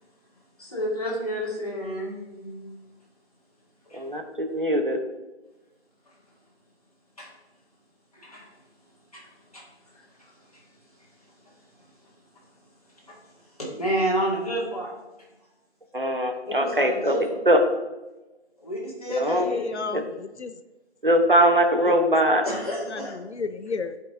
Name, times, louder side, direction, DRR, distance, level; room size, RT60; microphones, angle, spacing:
voice 1, 0.6-2.7 3.9-4.0 7.2-7.3 8.1-8.5 9.1-9.3 9.5-10.7 11.0-11.6 12.3-12.4 13.0-14.9 16.5-17.4 18.6-19.9 22.4-23.3, equal, 35° left, -5 dB, 2.4 m, -31 dB
voice 2, 3.9-5.0 15.9-17.1 17.5-17.6 19.2-19.4 19.9-20.0 21.0-22.4, right 1 dB, 50° right, 5 dB, 1.0 m, -21 dB
voice 3, 19.5-20.5 21.8-22.0 22.9-24.0, left 4 dB, 80° left, 12 dB, 0.6 m, -32 dB
10.0 x 5.4 x 3.8 m, 1.1 s
figure-of-eight pair, 180°, 33 cm